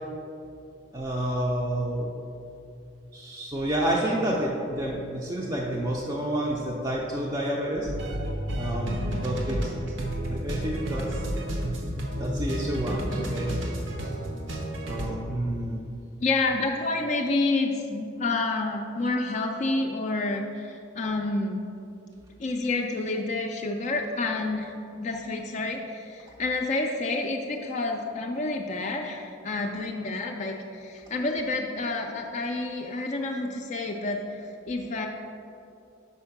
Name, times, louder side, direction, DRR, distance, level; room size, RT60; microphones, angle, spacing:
voice 1, 0.9-2.1 3.1-7.9 8.5-9.6 10.3-11.2 12.2-13.5 14.8-15.8, right 1 dB, 20° right, -3 dB, 0.5 m, -29 dB
sound 1, 7.8-15.1, right 1 dB, 75° right, 0.9 m, -31 dB
voice 2, 16.2-21.7 22.4-34.4 34.7-35.1, left 2 dB, 35° left, 1 dB, 0.4 m, -29 dB
5.6 x 4.4 x 5.8 m, 2.7 s
head